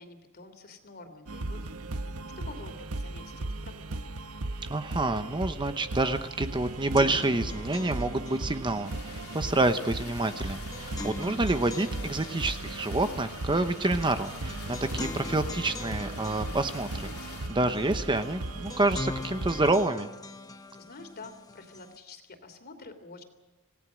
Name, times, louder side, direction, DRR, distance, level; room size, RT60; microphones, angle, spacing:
voice 1, 0.0-1.9 2.4-4.1 20.8-23.2, left 3 dB, 45° left, 8 dB, 3.1 m, -48 dB
sound 1, 1.3-19.9, right 2 dB, 80° right, 1.1 m, -37 dB
voice 2, 4.7-20.1, right 2 dB, 20° right, 9 dB, 0.9 m, -28 dB
sound 2, 6.0-6.1 6.4-22.0, left 2 dB, 15° left, 1.1 m, -43 dB
sound 3, 8.8-17.5, left 6 dB, 75° left, 3.2 m, -47 dB
27.0 x 17.5 x 6.3 m, 1.1 s
head